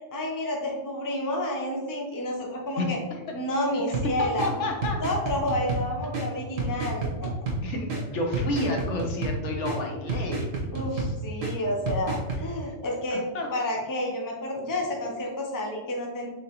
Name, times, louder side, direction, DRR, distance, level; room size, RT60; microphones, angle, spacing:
voice 1, 0.1-3.0 3.3-4.5 5.0-7.3 10.7-13.2 13.5-16.3, left 1 dB, 20° left, -1 dB, 0.6 m, -30 dB
sound 1, 3.9-12.4, right 2 dB, 85° right, 1.4 m, -31 dB
voice 2, 4.2-5.0 7.6-10.5 12.6-12.7 13.1-13.5, left 2 dB, 75° left, 1 dB, 1.1 m, -30 dB
4.7 x 3.6 x 2.9 m, 1.2 s
omnidirectional pair, 1.3 m